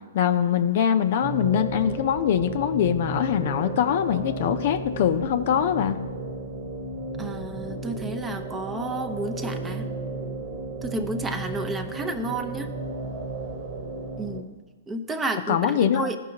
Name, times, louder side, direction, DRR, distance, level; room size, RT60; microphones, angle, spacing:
voice 1, 0.1-6.0 15.5-16.1, left 9 dB, 55° left, 9 dB, 0.5 m, -23 dB
sound 1, 1.2-14.4, right 3 dB, 40° right, 1.2 m, -34 dB
voice 2, 7.2-9.9 10.8-12.8 14.2-14.6 14.9-16.2, right 2 dB, 15° right, 7 dB, 0.6 m, -31 dB
14.5 x 5.4 x 2.8 m, 1.3 s
hypercardioid pair, 125°, 0 cm